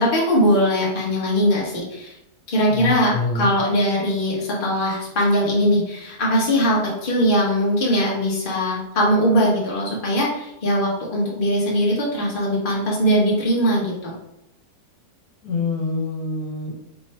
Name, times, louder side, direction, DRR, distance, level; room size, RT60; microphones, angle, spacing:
voice 1, 0.0-2.1 2.5-14.1, equal, 35° left, -4 dB, 1.3 m, -20 dB
voice 2, 2.7-3.5 15.4-16.7, left 4 dB, 80° left, -2 dB, 1.5 m, -25 dB
3.4 x 3.0 x 4.3 m, 0.83 s
omnidirectional pair, 1.6 m